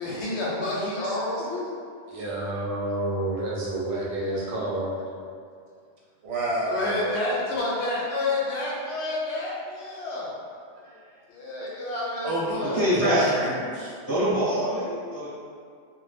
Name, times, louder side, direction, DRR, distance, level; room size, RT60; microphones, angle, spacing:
voice 1, 0.0-1.7 6.7-10.3 11.3-12.8, left 2 dB, 75° left, -5 dB, 0.8 m, -29 dB
voice 2, 1.0-1.5 2.1-5.0, right 1 dB, 60° right, -5 dB, 0.6 m, -30 dB
voice 3, 6.2-7.2 12.2-13.9, right 1 dB, 90° right, -4 dB, 1.0 m, -29 dB
voice 4, 12.6-13.3 14.1-15.3, equal, 20° right, -12 dB, 0.8 m, -24 dB
2.1 x 2.0 x 3.3 m, 2.2 s
omnidirectional pair, 1.2 m